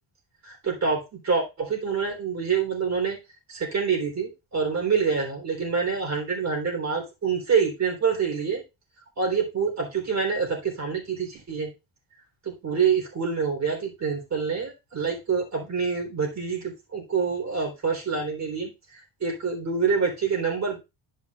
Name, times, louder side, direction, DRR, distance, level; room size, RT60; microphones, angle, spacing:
voice 1, 0.4-3.2 3.5-8.6 9.2-11.7 12.4-20.8, right 5 dB, 35° right, 1 dB, 3.7 m, -26 dB
11.0 x 5.6 x 2.4 m, 0.25 s
cardioid pair, 135°, 46 cm